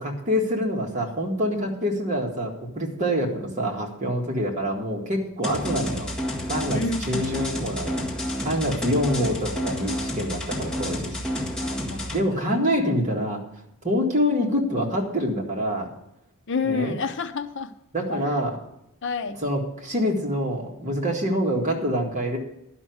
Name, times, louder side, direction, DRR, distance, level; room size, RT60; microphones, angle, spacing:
voice 1, 0.0-6.1 6.5-8.0 8.4-11.2 12.1-13.4 13.8-15.9 16.6-17.0 17.9-18.6 19.4-22.4, equal, 35° right, -1 dB, 2.0 m, -26 dB
sound 1, 5.4-12.2, equal, 5° left, 1.7 m, -30 dB
voice 2, 6.7-7.4 11.6-12.6 16.5-17.7 18.1-18.3 19.0-19.4, left 4 dB, 55° left, 9 dB, 0.7 m, -30 dB
11.5 x 5.9 x 7.8 m, 0.83 s
head